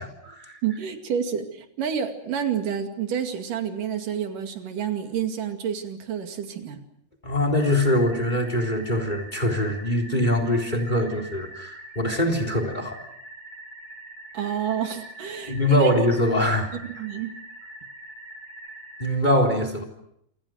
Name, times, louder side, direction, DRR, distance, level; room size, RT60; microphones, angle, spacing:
voice 1, 0.0-0.6 7.2-13.0 15.5-16.7 19.0-19.8, left 1 dB, 15° left, 7 dB, 3.8 m, -23 dB
voice 2, 0.6-6.8 14.3-15.9 16.7-17.3, right 8 dB, 90° right, 5 dB, 4.0 m, -29 dB
sound 1, 7.5-19.1, right 1 dB, 45° left, 7.6 m, -43 dB
28.0 x 27.5 x 6.3 m, 0.73 s
omnidirectional pair, 3.6 m